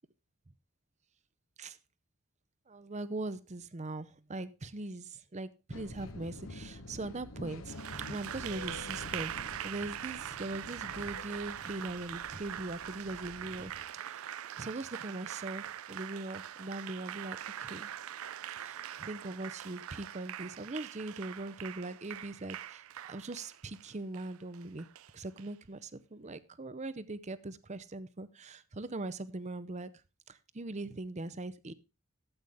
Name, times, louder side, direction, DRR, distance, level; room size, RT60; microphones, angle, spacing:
voice 1, 2.7-7.7 8.1-9.3 9.6-17.9 18.6-24.9 25.1-29.9 30.3-31.7, right 2 dB, 30° right, 0.7 m, -41 dB
sound 1, 5.7-13.8, left 2 dB, 65° left, 1.2 m, -48 dB
Applause, 7.7-25.5, right 10 dB, 70° right, 0.4 m, -43 dB
13.0 x 8.2 x 3.5 m
head